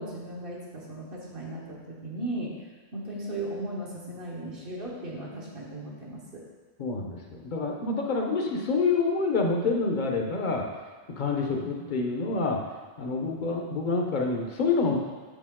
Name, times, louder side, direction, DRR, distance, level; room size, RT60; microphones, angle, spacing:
voice 1, 0.0-2.5 2.9-6.4 11.3-11.7 13.2-13.6, right 1 dB, 60° right, -4 dB, 1.5 m, -37 dB
voice 2, 6.8-10.6 11.2-12.6 13.0-15.0, left 4 dB, 50° left, 1 dB, 0.9 m, -27 dB
6.7 x 5.1 x 3.6 m, 1.4 s
omnidirectional pair, 1.0 m